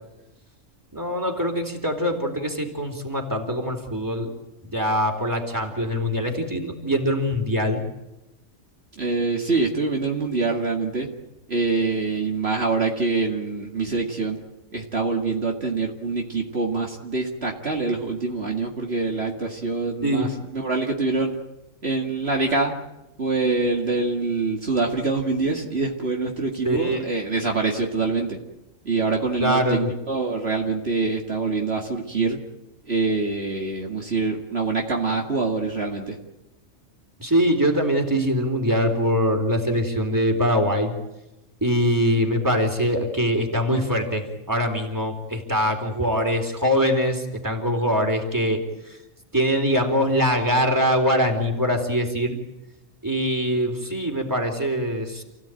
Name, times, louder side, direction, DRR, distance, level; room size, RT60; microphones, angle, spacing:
voice 1, 0.9-4.3 4.7-7.9 20.0-20.3 26.7-27.0 29.4-29.9 37.2-40.9 41.6-49.0 49.3-52.4 53.0-55.2, equal, 15° right, 3 dB, 3.8 m, -23 dB
voice 2, 8.9-11.1 11.5-14.4 14.7-21.4 21.8-22.7 23.2-28.4 28.8-32.4 32.8-36.2, right 3 dB, 55° right, 0 dB, 2.4 m, -25 dB
29.0 x 17.0 x 9.1 m, 0.97 s
omnidirectional pair, 1.3 m